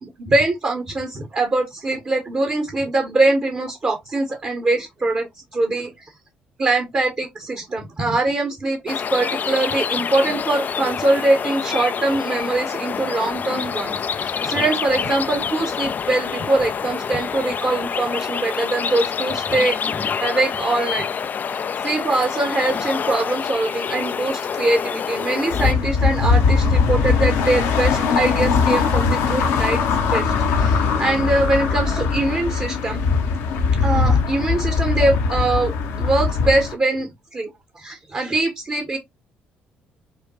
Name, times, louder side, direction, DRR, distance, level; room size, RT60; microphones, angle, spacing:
voice 1, 0.0-6.1 6.6-21.1 21.5-29.8 30.1-33.0 33.8-37.5 37.8-39.0, right 2 dB, 35° right, 1.1 m, -23 dB
sound 1, 8.9-25.7, left 6 dB, 35° left, 0.3 m, -27 dB
sound 2, 25.5-36.7, left 5 dB, 65° left, 0.7 m, -20 dB
5.3 x 2.2 x 2.9 m
figure-of-eight pair, 45°, 5 cm